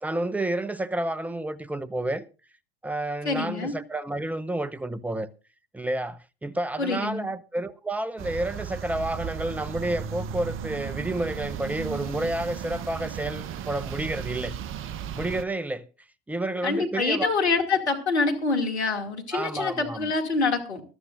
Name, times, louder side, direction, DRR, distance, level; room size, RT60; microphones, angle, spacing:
voice 1, 0.0-2.2 2.8-5.3 5.7-14.5 15.1-15.9 16.3-17.3 19.3-20.1, right 1 dB, 5° right, 0.8 m, -30 dB
voice 2, 3.2-3.7 6.8-7.3 16.6-20.8, left 3 dB, 85° left, 2.5 m, -26 dB
sound 1, 8.2-15.4, right 8 dB, 40° right, 1.0 m, -35 dB
21.5 x 13.0 x 2.6 m
figure-of-eight pair, 75°, 33 cm